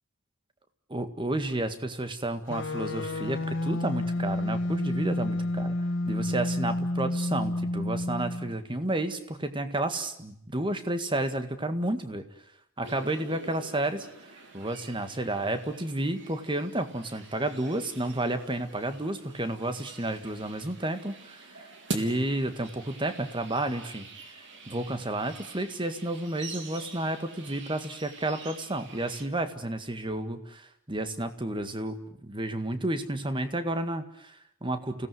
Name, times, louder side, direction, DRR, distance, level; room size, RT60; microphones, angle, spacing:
voice 1, 0.9-5.8 6.1-12.2 12.8-14.1 14.5-21.6 21.9-24.1 24.7-35.1, right 1 dB, 25° right, 9 dB, 1.9 m, -31 dB
sound 1, 2.5-8.6, left 1 dB, 60° left, 1.7 m, -30 dB
sound 2, 12.8-29.2, right 3 dB, 60° right, 3.6 m, -45 dB
29.5 x 17.5 x 9.5 m, 0.76 s
head